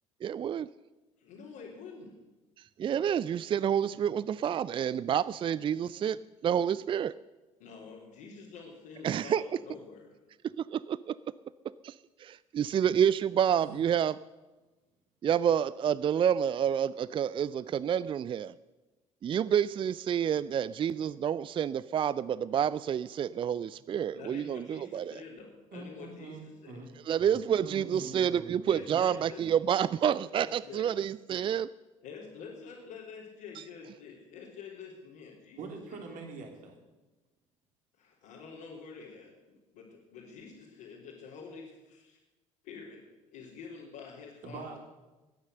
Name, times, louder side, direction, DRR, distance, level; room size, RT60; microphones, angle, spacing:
voice 1, 0.2-0.7 2.8-7.2 9.0-9.4 10.6-11.2 11.8-14.2 15.2-18.5 19.2-25.2 27.1-31.7, right 9 dB, 30° right, 0.4 m, -29 dB
voice 2, 1.2-2.1 7.6-10.1 24.1-26.8 28.7-29.4 30.3-30.9 32.0-35.6 35.9-36.2 38.0-42.2 42.6-43.0 43.3-44.8, left 5 dB, 65° left, 3.4 m, -47 dB
voice 3, 25.7-28.9 35.6-36.8 44.4-44.9, right 3 dB, 55° right, 3.3 m, -45 dB
21.0 x 9.8 x 6.7 m
figure-of-eight pair, 55°, 17 cm